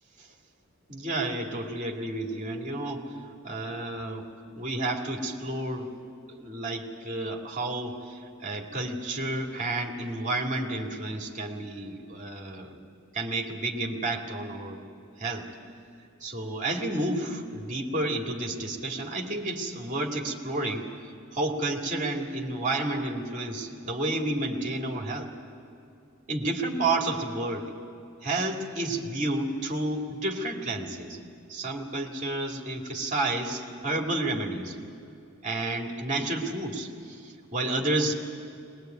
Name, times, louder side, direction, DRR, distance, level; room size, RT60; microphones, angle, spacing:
voice 1, 0.9-3.0 3.4-4.3 4.6-5.9 6.3-12.8 13.1-14.8 15.2-15.5 16.2-20.9 21.3-25.3 26.3-27.7 28.2-31.2 31.5-34.8 35.4-37.2 37.5-38.1, right 2 dB, 35° right, 2 dB, 2.4 m, -30 dB
21.5 x 21.0 x 9.3 m, 2.6 s
head